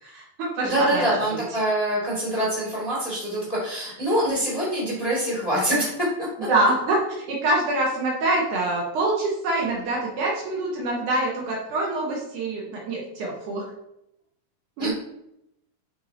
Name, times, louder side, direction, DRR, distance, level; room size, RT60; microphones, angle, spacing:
voice 1, 0.0-1.4 6.5-13.7 14.8-14.9, right 2 dB, 70° right, -3 dB, 1.9 m, -25 dB
voice 2, 0.6-6.5 14.8-14.9, right 1 dB, 20° left, -7 dB, 0.8 m, -25 dB
10.0 x 4.8 x 2.9 m, 0.81 s
omnidirectional pair, 5.6 m